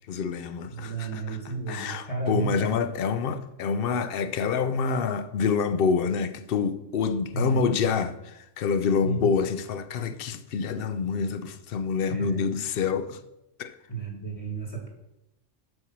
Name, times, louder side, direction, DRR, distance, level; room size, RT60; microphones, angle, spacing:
voice 1, 0.1-1.4 1.7-13.2 13.6-13.7, left 6 dB, 60° left, 0.7 m, -27 dB
voice 2, 0.7-2.7 7.3-7.7 9.0-9.3 12.1-12.5 13.9-14.9, right 5 dB, 30° left, 1.5 m, -32 dB
7.8 x 4.7 x 5.8 m
omnidirectional pair, 1.3 m